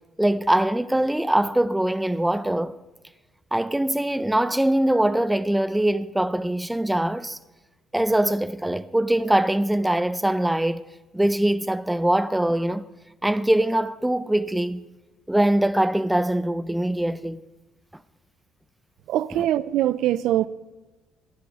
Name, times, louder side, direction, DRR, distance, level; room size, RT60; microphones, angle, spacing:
voice 1, 0.2-2.7 3.5-7.4 7.9-10.8 11.1-12.8 13.2-14.8 15.3-17.4, right 1 dB, 10° right, 0.5 m, -22 dB
voice 2, 19.1-20.5, right 13 dB, 75° right, 0.3 m, -22 dB
14.5 x 10.5 x 3.5 m
supercardioid pair, 65°, 0 cm